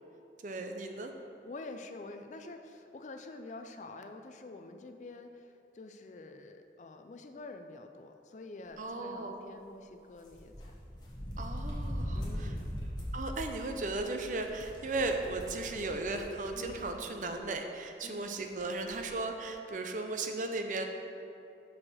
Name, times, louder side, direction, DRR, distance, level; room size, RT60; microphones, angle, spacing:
voice 1, 0.4-1.1 8.8-9.4 11.4-12.5 13.1-20.9, right 2 dB, 45° right, 5 dB, 0.5 m, -36 dB
voice 2, 1.4-10.8 12.1-12.7 16.5-16.8 18.0-18.4, left 2 dB, 45° left, 6 dB, 0.4 m, -47 dB
sound 1, 10.2-17.0 17.3-17.4 18.5-18.6 18.9-19.1, equal, 25° left, 1.3 m, -40 dB
5.7 x 5.0 x 6.4 m, 2.8 s
head